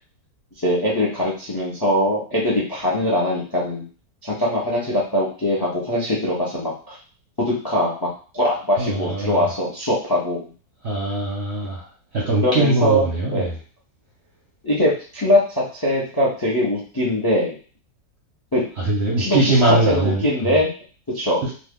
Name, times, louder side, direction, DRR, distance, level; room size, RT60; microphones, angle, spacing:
voice 1, 0.6-3.8 4.2-7.0 7.4-8.1 8.3-10.5 12.4-13.0 13.3-13.5 14.6-17.5 18.5-18.6 19.2-19.4 19.9-20.7 21.1-21.4, left 1 dB, 25° left, -5 dB, 0.5 m, -21 dB
voice 2, 8.8-9.5 10.8-11.9 12.1-13.6 18.8-20.6 21.4-21.5, right 2 dB, 50° right, -3 dB, 0.8 m, -21 dB
2.9 x 2.4 x 3.6 m, 0.39 s
omnidirectional pair, 1.9 m